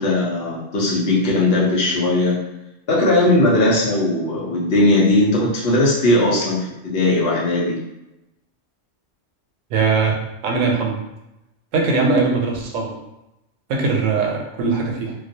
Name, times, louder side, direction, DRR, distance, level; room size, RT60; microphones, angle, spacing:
voice 1, 0.0-2.4 2.9-7.8, left 2 dB, 60° left, -5 dB, 0.8 m, -18 dB
voice 2, 9.7-11.0 11.7-12.9 13.7-15.1, right 4 dB, 85° right, 0 dB, 0.9 m, -20 dB
2.3 x 2.2 x 2.6 m, 0.91 s
omnidirectional pair, 1.3 m